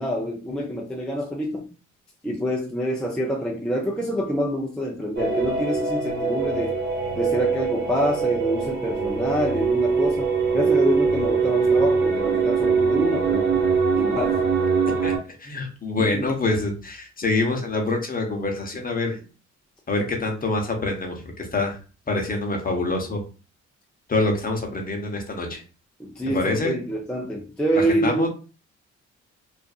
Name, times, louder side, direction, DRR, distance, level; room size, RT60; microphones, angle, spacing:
voice 1, 0.0-1.7 2.2-6.8 7.2-13.7 14.0-14.5 16.0-16.3 26.0-28.3, equal, 5° left, -1 dB, 0.5 m, -26 dB
sound 1, 5.1-15.2, right 5 dB, 35° right, 1.1 m, -22 dB
voice 2, 15.4-19.2 19.9-21.8 22.1-23.2 24.1-25.6 26.3-26.7 27.8-28.3, left 2 dB, 30° left, 2 dB, 0.8 m, -25 dB
2.5 x 2.5 x 2.3 m, 0.34 s
cardioid pair, 90°, 30 cm